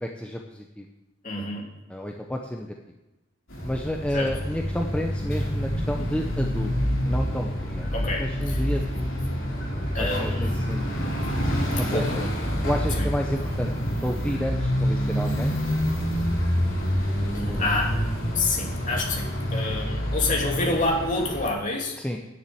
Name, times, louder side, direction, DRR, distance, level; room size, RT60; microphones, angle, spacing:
voice 1, 0.0-0.9 1.9-2.7 3.6-6.7 7.0-7.9 8.2-9.3 9.7-11.2 11.8-12.0 12.6-15.6 17.5-17.7 22.0-22.2, equal, 5° left, 1 dB, 0.8 m, -31 dB
voice 2, 1.2-1.7 4.1-4.3 7.9-8.7 9.9-10.6 11.9-12.3 12.9-13.1 17.3-17.9 18.3-22.0, left 2 dB, 40° left, -1 dB, 2.8 m, -28 dB
sound 1, 3.5-21.5, equal, 75° left, 4.4 m, -27 dB
10.5 x 7.2 x 8.6 m, 1.0 s
head